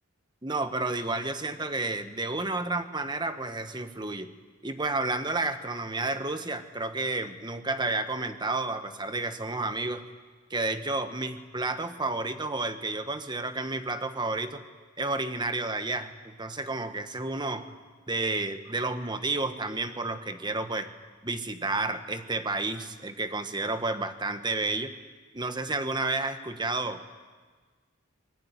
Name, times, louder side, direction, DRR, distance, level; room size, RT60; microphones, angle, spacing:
voice 1, 0.4-4.3 4.6-10.0 10.5-14.6 15.0-17.7 18.1-20.9 21.2-24.9 25.3-27.0, right 2 dB, 20° right, 9 dB, 1.3 m, -31 dB
24.5 x 20.5 x 9.8 m, 1.4 s
head